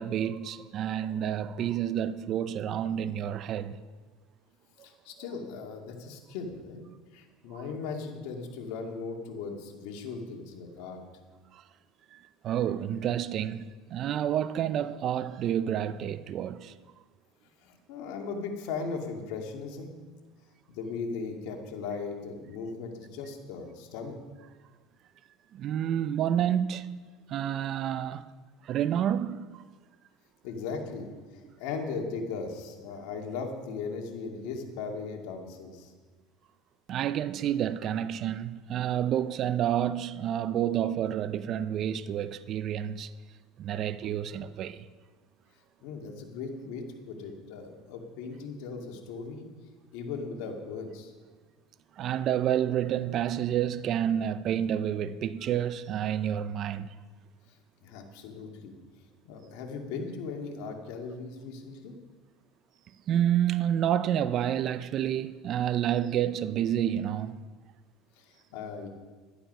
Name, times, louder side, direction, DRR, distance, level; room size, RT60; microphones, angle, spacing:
voice 1, 0.0-3.8 11.5-11.6 12.1-12.2 12.4-16.7 25.5-26.9 27.3-28.3 28.6-29.6 36.9-43.1 43.6-44.8 52.0-56.9 63.1-67.4, right 10 dB, 45° right, 0.6 m, -29 dB
voice 2, 4.8-6.8 7.1-11.0 17.6-19.9 20.7-24.2 30.4-35.9 45.8-49.5 49.9-51.1 57.8-58.7 59.3-62.0 68.2-68.9, left 4 dB, 70° left, 2.3 m, -38 dB
11.5 x 11.5 x 5.6 m
supercardioid pair, 110°, 0 cm